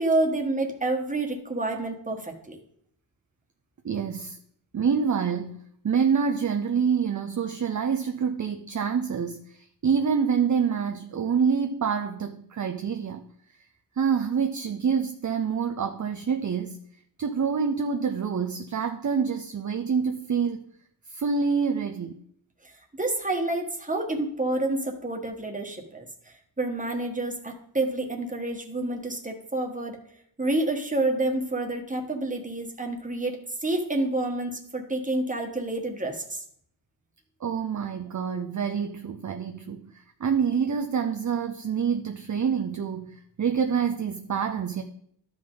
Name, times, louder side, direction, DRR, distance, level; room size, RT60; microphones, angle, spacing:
voice 1, 0.0-2.6 23.0-26.1 26.6-30.0 30.4-36.4, right 2 dB, 20° right, 1.4 m, -28 dB
voice 2, 3.8-4.4 4.7-13.2 14.0-16.8 17.2-20.6 21.1-22.2 37.4-44.8, right 6 dB, 45° right, 0.6 m, -27 dB
12.5 x 5.3 x 3.8 m
wide cardioid pair, 90°, 43 cm